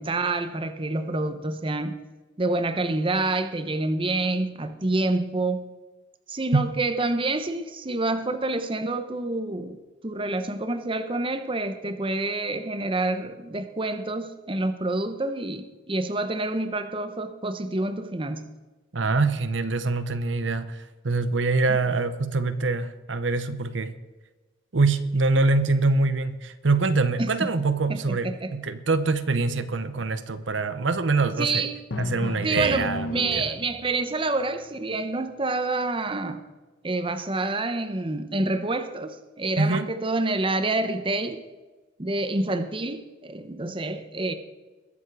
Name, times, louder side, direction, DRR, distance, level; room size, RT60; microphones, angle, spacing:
voice 1, 0.0-2.0 2.4-5.7 6.3-9.8 10.0-18.5 27.2-27.5 27.9-28.5 31.4-31.8 32.4-36.4 36.8-41.4 42.0-44.3, right 2 dB, 25° right, 0.9 m, -27 dB
voice 2, 18.9-23.9 24.7-31.6 32.0-33.5 39.6-39.9, right 3 dB, 70° right, 0.9 m, -24 dB
Drum, 31.9-33.9, left 1 dB, 75° left, 1.3 m, -31 dB
21.0 x 7.3 x 4.8 m
head